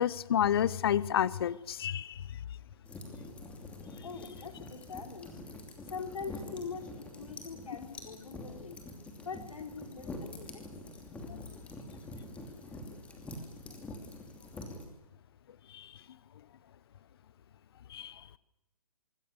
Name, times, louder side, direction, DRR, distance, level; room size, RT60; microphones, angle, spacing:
voice 1, 0.0-2.2 11.3-11.4 15.7-15.9 17.9-18.1, left 9 dB, 45° left, 20 dB, 0.8 m, -30 dB
sound 1, 2.8-14.8, left 1 dB, 5° left, 2.9 m, -46 dB
voice 2, 4.0-5.4 5.9-8.8 9.2-10.7, left 5 dB, 70° left, 5 dB, 3.6 m, -43 dB
25.5 x 23.0 x 6.8 m, 0.93 s
hypercardioid pair, 160°, 18 cm